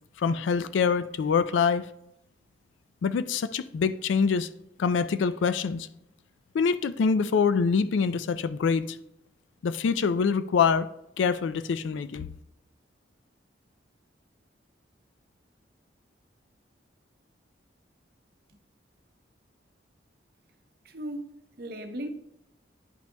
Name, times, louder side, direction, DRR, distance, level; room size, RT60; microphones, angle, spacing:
voice 1, 0.2-1.8 3.0-4.5 4.8-5.9 6.5-9.0 9.6-10.9 11.2-12.3, left 5 dB, 85° left, 0.3 m, -25 dB
voice 2, 20.8-22.1, right 1 dB, 55° right, 0.7 m, -37 dB
10.0 x 5.9 x 2.2 m
head